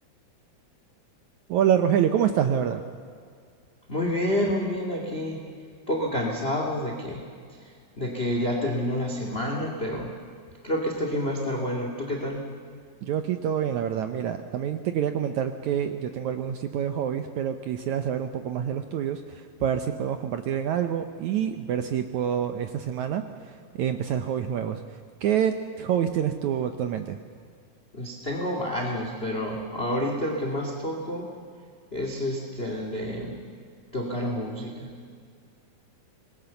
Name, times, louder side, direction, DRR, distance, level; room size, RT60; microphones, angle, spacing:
voice 1, 1.5-2.8 13.0-24.8 25.2-27.2, right 9 dB, 75° right, 8 dB, 1.7 m, -27 dB
voice 2, 3.9-5.4 5.9-7.2 8.0-10.1 10.6-12.4 27.9-31.3 31.9-33.4 33.9-34.9, left 1 dB, 20° left, 1 dB, 2.2 m, -29 dB
25.5 x 21.0 x 7.0 m, 2.2 s
omnidirectional pair, 4.4 m